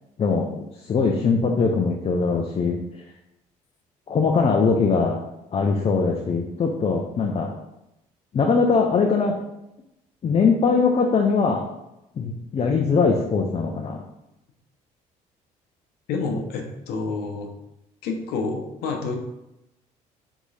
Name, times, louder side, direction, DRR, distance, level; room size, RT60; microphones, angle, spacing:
voice 1, 0.2-2.8 4.1-5.2 5.5-7.5 8.3-9.4 10.2-11.7 12.2-14.0, left 4 dB, 35° left, 2 dB, 0.6 m, -21 dB
voice 2, 16.1-17.5 18.0-19.1, left 4 dB, 75° left, 3 dB, 0.8 m, -28 dB
3.5 x 3.1 x 4.0 m, 0.88 s
supercardioid pair, 70°, 17 cm